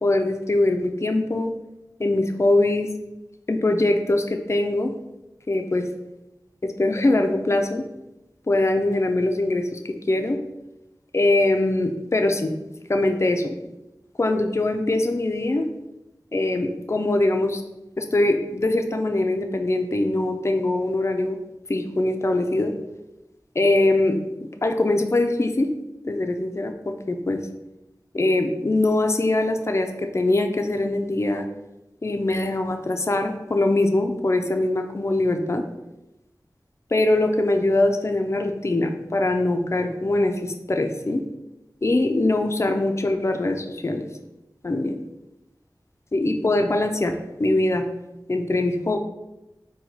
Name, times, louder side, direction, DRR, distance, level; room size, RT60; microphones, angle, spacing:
voice 1, 0.0-1.5 2.0-2.9 3.5-4.9 5.5-5.9 6.6-7.9 8.5-10.4 11.1-12.5 12.9-13.5 14.2-15.7 16.3-17.6 18.0-21.4 21.7-22.7 23.6-24.2 24.6-25.7 26.0-27.4 28.1-31.5 32.0-35.6 36.9-41.3 41.8-44.1 44.6-45.0 46.1-47.9 48.3-49.0, left 2 dB, 35° left, 5 dB, 0.4 m, -22 dB
4.4 x 2.2 x 3.9 m, 0.96 s
wide cardioid pair, 40°, 8 cm